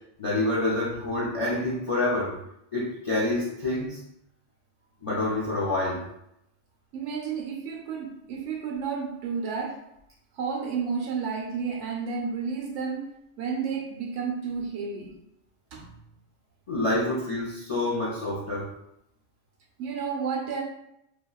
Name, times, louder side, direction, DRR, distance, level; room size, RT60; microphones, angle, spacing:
voice 1, 0.2-2.3 2.7-4.0 5.0-6.0 16.7-18.7, left 2 dB, 50° left, -6 dB, 0.4 m, -27 dB
voice 2, 6.9-9.8 10.3-13.1 13.4-15.2 15.7-15.9 17.0-17.1 19.8-20.6, right 5 dB, 80° right, 0 dB, 0.9 m, -31 dB
2.8 x 2.7 x 2.2 m, 0.80 s
omnidirectional pair, 1.2 m